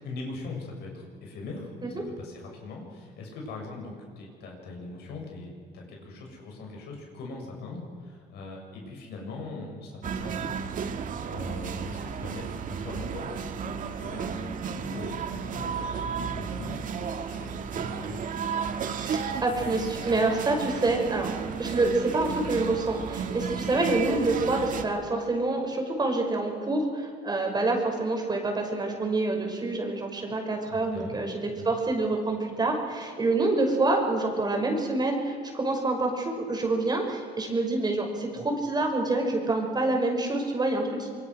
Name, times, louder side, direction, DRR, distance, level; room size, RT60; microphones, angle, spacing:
voice 1, 0.0-10.5 11.3-12.5 12.8-13.3 14.0-18.5 30.7-31.2 31.5-31.8, left 3 dB, 75° left, 0 dB, 7.5 m, -41 dB
sound 1, 10.0-24.8, right 6 dB, 50° right, 1.9 m, -33 dB
voice 2, 18.9-21.3 21.6-41.1, right 2 dB, 25° right, 2 dB, 5.6 m, -27 dB
25.5 x 23.5 x 6.4 m, 2.1 s
cardioid pair, 110°, 17 cm